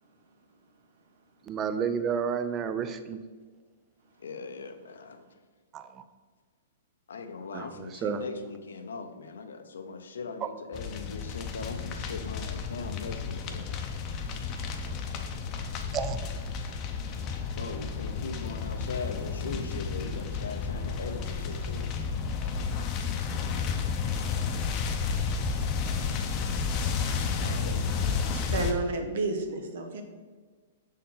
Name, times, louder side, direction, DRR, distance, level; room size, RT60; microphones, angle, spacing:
voice 1, 1.5-3.2 5.7-6.0 7.5-8.2 15.9-16.2, right 7 dB, 25° right, 10 dB, 0.4 m, -31 dB
voice 2, 4.2-5.3 7.1-13.7 15.2-15.4 17.3-21.9 27.2-27.9, left 4 dB, 85° left, 8 dB, 0.6 m, -40 dB
sound 1, 10.7-28.7, left 5 dB, 35° left, 0.6 m, -32 dB
voice 3, 28.3-30.0, right 3 dB, 65° right, 5 dB, 0.9 m, -31 dB
6.4 x 4.2 x 3.8 m, 1.5 s
hypercardioid pair, 135°, 0 cm